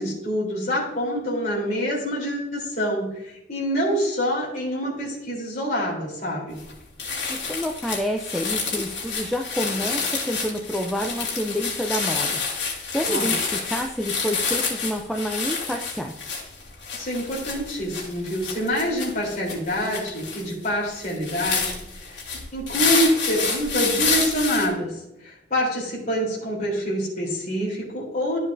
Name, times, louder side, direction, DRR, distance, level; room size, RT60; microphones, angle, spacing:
voice 1, 0.0-6.6 13.1-13.3 16.9-21.8 22.1-22.2 22.5-24.9 25.2-28.4, equal, 40° left, -4 dB, 3.6 m, -26 dB
sound 1, 6.6-6.7 7.0-24.7, left 5 dB, 75° left, 2.6 m, -28 dB
voice 2, 7.3-12.4 12.9-16.1, equal, ahead, 1 dB, 0.5 m, -28 dB
12.0 x 7.4 x 2.7 m, 0.87 s
head